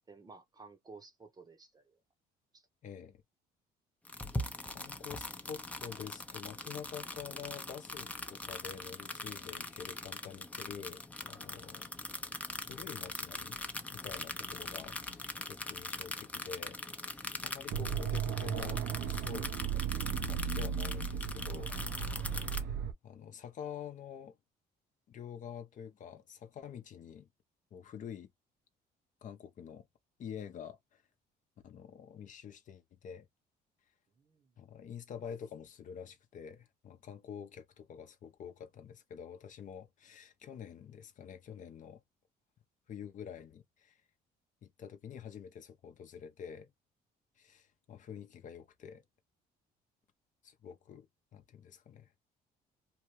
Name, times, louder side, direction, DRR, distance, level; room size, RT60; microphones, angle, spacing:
voice 1, 0.1-2.0 2.5-2.6 14.4-14.5 34.2-34.5, right 4 dB, 25° right, 0.8 m, -54 dB
voice 2, 2.8-3.2 4.1-4.3 4.7-11.9 12.2-13.6 13.9-16.8 17.0-21.7 22.1-22.8 23.0-24.4 25.1-27.3 27.7-28.3 29.2-29.9 30.2-31.0 31.6-33.3 34.6-42.0 42.9-44.0 44.6-46.7 47.4-49.0 50.4-52.1, left 8 dB, 50° left, 0.7 m, -47 dB
sound 1, 4.0-22.6, left 2 dB, 10° left, 0.5 m, -42 dB
sound 2, 17.7-22.9, right 8 dB, 60° right, 0.5 m, -35 dB
2.8 x 2.2 x 3.1 m
cardioid pair, 110°, 17 cm